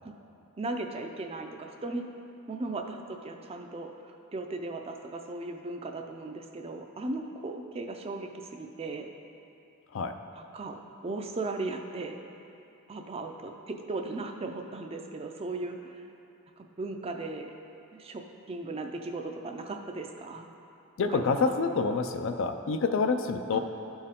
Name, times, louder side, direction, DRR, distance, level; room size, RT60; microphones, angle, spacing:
voice 1, 0.6-2.0 2.5-9.1 10.3-12.2 12.9-16.0 16.6-17.5 17.9-20.5 21.1-21.6 23.5-23.6, right 2 dB, 25° right, 4 dB, 0.4 m, -37 dB
voice 2, 21.0-23.6, left 4 dB, 60° left, 7 dB, 0.4 m, -27 dB
12.0 x 4.4 x 3.6 m, 2.9 s
head